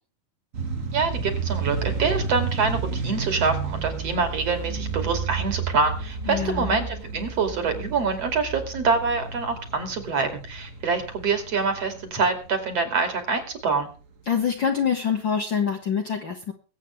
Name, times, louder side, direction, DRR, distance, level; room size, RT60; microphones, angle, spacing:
sound 1, 0.5-13.7, right 5 dB, 65° right, 0.7 m, -32 dB
voice 1, 0.9-13.9, right 4 dB, 50° right, 7 dB, 3.6 m, -25 dB
voice 2, 6.2-6.9 14.2-16.5, left 7 dB, 45° left, 3 dB, 1.8 m, -25 dB
22.5 x 8.5 x 3.4 m, 0.36 s
omnidirectional pair, 3.7 m